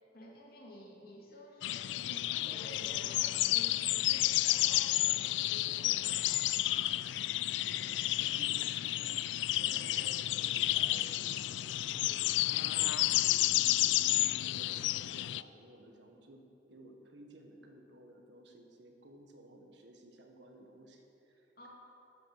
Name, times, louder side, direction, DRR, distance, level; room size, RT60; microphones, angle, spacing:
voice 1, 0.1-6.6 21.6-21.7, equal, 55° left, -3 dB, 2.8 m, -52 dB
sound 1, 1.6-15.4, left 15 dB, 75° left, 0.3 m, -31 dB
voice 2, 7.5-16.4 16.7-21.7, right 1 dB, 70° right, 3 dB, 1.5 m, -56 dB
13.0 x 8.6 x 6.6 m, 3.0 s
head